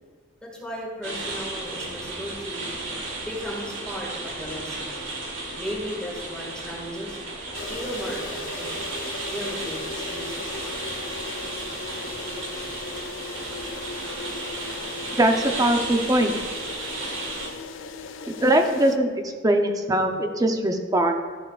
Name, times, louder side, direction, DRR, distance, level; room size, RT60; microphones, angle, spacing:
voice 1, 0.4-2.7 3.2-4.9 5.6-7.2 7.7-8.7 9.3-10.7, equal, 5° left, -4 dB, 1.9 m, -35 dB
sound 1, 1.0-17.5, right 2 dB, 75° right, 1.8 m, -34 dB
sound 2, 7.5-19.0, left 4 dB, 70° left, 0.5 m, -38 dB
voice 2, 15.2-16.3 18.4-19.1 19.4-21.2, right 1 dB, 20° right, 4 dB, 0.7 m, -21 dB
13.0 x 7.1 x 2.5 m, 1.5 s
head